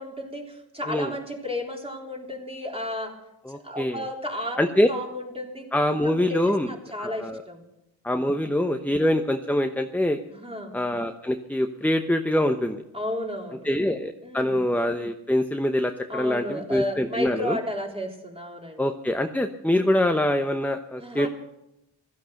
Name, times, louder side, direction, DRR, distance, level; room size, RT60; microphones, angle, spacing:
voice 1, 0.0-3.1 3.6-5.7 6.0-7.6 10.3-10.7 12.9-13.7 14.2-14.6 16.1-18.8 19.7-20.0 21.0-21.3, left 1 dB, 10° right, 1 dB, 3.6 m, -33 dB
voice 2, 3.4-4.0 4.6-4.9 5.7-6.7 7.0-7.4 8.0-10.2 10.7-12.8 13.6-17.6 18.8-21.3, left 1 dB, 5° left, 6 dB, 0.9 m, -24 dB
15.5 x 13.0 x 6.6 m, 0.88 s
wide cardioid pair, 60°, 46 cm